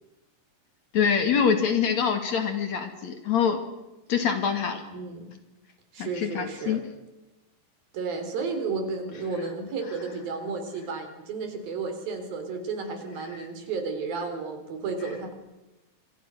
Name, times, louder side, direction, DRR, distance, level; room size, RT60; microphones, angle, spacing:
voice 1, 0.9-3.6 4.1-4.8 6.0-6.8, left 7 dB, 55° left, 7 dB, 3.2 m, -25 dB
voice 2, 4.9-5.3 5.9-6.8 7.9-15.3, right 4 dB, 75° right, 6 dB, 5.6 m, -32 dB
28.0 x 24.5 x 6.4 m, 1.0 s
omnidirectional pair, 4.2 m